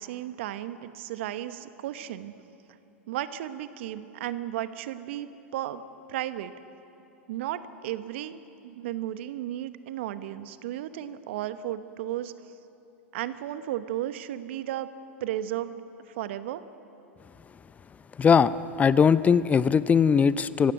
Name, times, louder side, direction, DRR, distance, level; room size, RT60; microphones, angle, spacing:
voice 1, 0.0-2.3 3.1-5.8 6.1-6.5 7.3-12.3 13.1-14.9 15.2-15.8 16.2-16.6, right 12 dB, 65° right, 12 dB, 1.0 m, -34 dB
voice 2, 18.2-20.7, left 6 dB, 20° left, 16 dB, 0.5 m, -20 dB
25.0 x 15.5 x 8.0 m, 2.9 s
hypercardioid pair, 95°, 7 cm